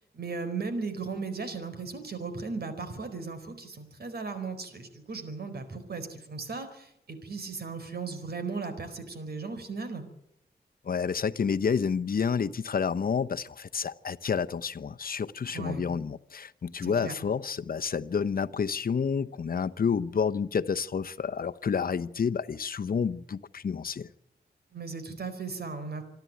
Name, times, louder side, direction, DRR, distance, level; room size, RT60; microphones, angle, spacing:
voice 1, 0.1-10.0 15.5-15.8 16.8-17.2 24.7-26.0, right 4 dB, 65° right, 4.5 m, -36 dB
voice 2, 10.8-24.1, left 6 dB, 55° left, 0.9 m, -29 dB
27.0 x 11.5 x 9.4 m
wide cardioid pair, 90°, 17 cm